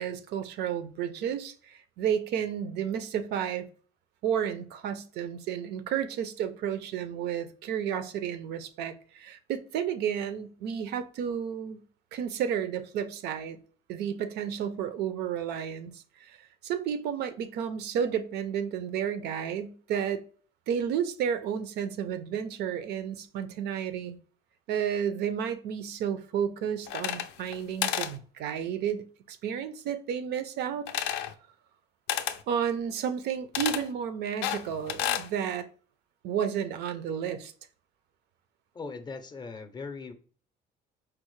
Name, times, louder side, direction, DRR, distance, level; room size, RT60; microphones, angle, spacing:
voice 1, 0.0-3.6 4.2-11.8 12.1-13.6 13.9-16.4 16.6-20.2 20.7-24.2 24.7-30.9 32.5-35.6 36.2-37.5, right 8 dB, 75° right, 0.4 m, -32 dB
sound 1, 26.9-27.6 27.8-28.1 30.9-31.3 32.1-32.4 33.5-33.8 34.4-35.3, left 10 dB, 85° left, 0.4 m, -30 dB
voice 2, 38.7-40.1, left 4 dB, 25° left, 0.5 m, -39 dB
4.5 x 2.0 x 3.1 m
cardioid pair, 110°, 17 cm